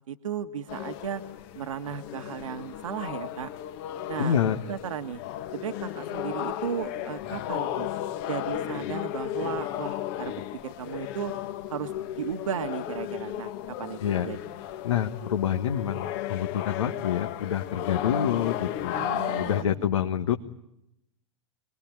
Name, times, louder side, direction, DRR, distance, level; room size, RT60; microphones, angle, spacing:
voice 1, 0.1-1.2 1.5-3.5 4.1-4.3 4.7-5.2 5.5-7.9 8.3-11.3 11.7-13.5 13.8-14.4 18.9-20.1, right 8 dB, 70° right, 8 dB, 1.7 m, -35 dB
sound 1, 0.7-19.6, left 12 dB, 45° left, 1.6 m, -34 dB
voice 2, 4.2-4.6 14.0-14.3 14.8-19.0 19.4-20.4, left 9 dB, 70° left, 6 dB, 1.4 m, -27 dB
27.0 x 21.5 x 9.0 m, 0.83 s
figure-of-eight pair, 100°, 17 cm